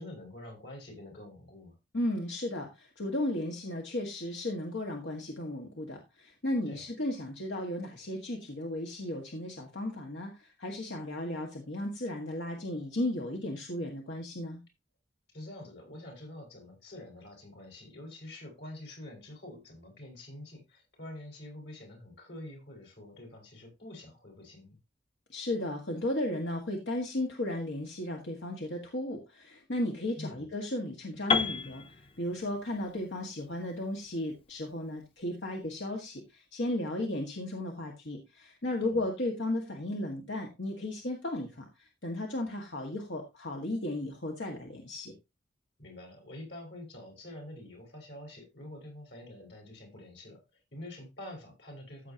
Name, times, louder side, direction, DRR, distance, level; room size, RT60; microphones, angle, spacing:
voice 1, 0.0-1.8 6.7-6.9 15.3-24.8 30.2-30.5 38.8-39.1 45.8-52.1, left 1 dB, 75° left, 2 dB, 5.4 m, -46 dB
voice 2, 1.9-14.6 25.3-45.1, left 1 dB, 90° left, 2 dB, 1.7 m, -35 dB
Piano, 31.3-35.2, left 5 dB, 30° left, 0.7 m, -34 dB
14.5 x 7.3 x 2.9 m, 0.25 s
head